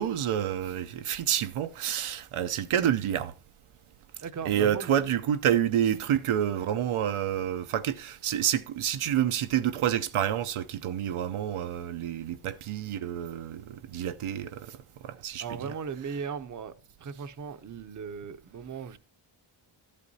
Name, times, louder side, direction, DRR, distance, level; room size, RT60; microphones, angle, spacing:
voice 1, 0.0-3.3 4.4-14.8 15.0-15.7, right 10 dB, 80° right, 0.6 m, -28 dB
voice 2, 4.2-4.9 15.4-16.7 17.0-19.0, right 6 dB, 35° right, 0.6 m, -37 dB
13.0 x 8.4 x 2.7 m
wide cardioid pair, 95°, 50 cm